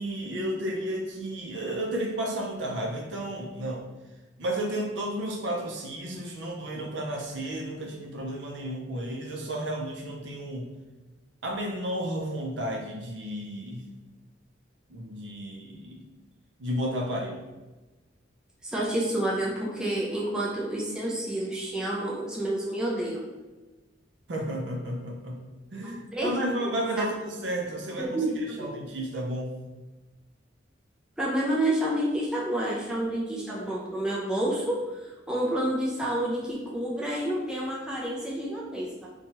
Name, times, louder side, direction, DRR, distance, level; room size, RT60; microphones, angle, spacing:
voice 1, 0.0-3.8 4.4-10.7 11.4-13.8 14.9-16.0 16.6-17.4 24.3-25.4 25.7-28.2 28.6-29.5, right 1 dB, 70° right, 1 dB, 0.5 m, -32 dB
voice 2, 18.6-23.3 25.8-26.4 27.0-27.1 28.0-28.8 31.2-34.8 35.3-39.1, right 1 dB, 5° right, -5 dB, 0.4 m, -29 dB
2.8 x 2.2 x 2.9 m, 1.2 s
head